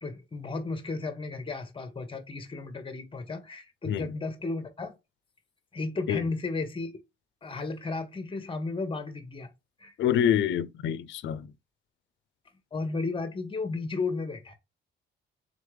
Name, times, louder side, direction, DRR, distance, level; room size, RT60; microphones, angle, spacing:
voice 1, 0.0-5.0 5.7-6.9 7.4-9.5 9.8-9.9 12.7-14.6, left 3 dB, 25° left, 1.0 m, -34 dB
voice 2, 10.0-11.5, left 9 dB, 70° left, 0.4 m, -26 dB
3.9 x 3.1 x 3.2 m
cardioid pair, 90°, 20 cm